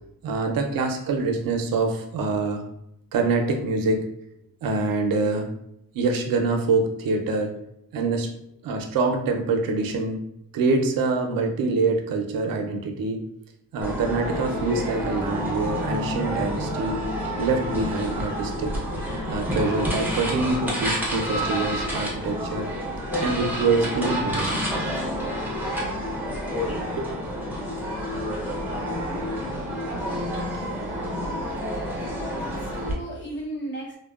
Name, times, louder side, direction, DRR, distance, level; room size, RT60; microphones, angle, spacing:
voice 1, 0.2-2.7 3.1-4.0 4.6-5.5 5.9-7.5 7.9-8.3 8.6-10.2 10.5-13.2 13.7-17.0 17.4-18.8 19.3-22.7 23.2-24.5 27.0-27.1 29.9-30.1 30.3-30.7 30.9-31.6 32.0-32.6, right 3 dB, 90° right, 3 dB, 0.5 m, -25 dB
sound 1, 13.8-32.9, equal, 5° right, 0.5 m, -29 dB
voice 2, 23.1-23.6 31.8-31.9 32.3-34.0, equal, 35° left, -2 dB, 0.7 m, -35 dB
2.8 x 2.1 x 2.3 m, 0.78 s
wide cardioid pair, 145°, 33 cm